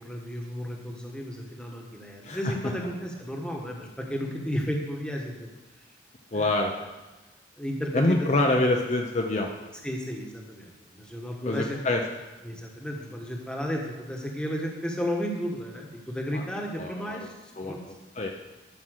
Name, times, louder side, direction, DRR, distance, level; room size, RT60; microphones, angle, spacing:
voice 1, 0.0-5.5 6.3-6.6 7.6-8.5 9.8-11.8 12.4-17.8, equal, 5° left, 0 dB, 1.3 m, -33 dB
voice 2, 6.3-6.7 7.9-9.5 11.4-12.0 16.3-16.4 16.8-17.2 17.6-17.7 18.2-18.3, left 2 dB, 35° left, 1 dB, 0.7 m, -25 dB
11.5 x 6.0 x 6.5 m, 1.1 s
head